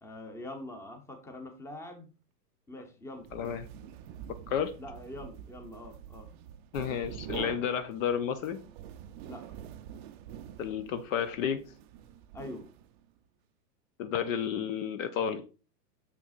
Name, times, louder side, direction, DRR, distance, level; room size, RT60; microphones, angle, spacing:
voice 1, 0.0-2.1 2.7-3.3 4.8-6.3 9.2-9.5 12.3-12.7, left 1 dB, 5° left, 5 dB, 0.9 m, -44 dB
sound 1, 3.2-13.1, right 10 dB, 35° right, 0.5 m, -46 dB
voice 2, 3.3-3.7 4.5-4.7 6.7-8.6 10.6-11.6 14.0-15.4, left 8 dB, 50° left, 10 dB, 0.8 m, -31 dB
6.8 x 5.8 x 2.5 m, 0.34 s
hypercardioid pair, 115°, 50 cm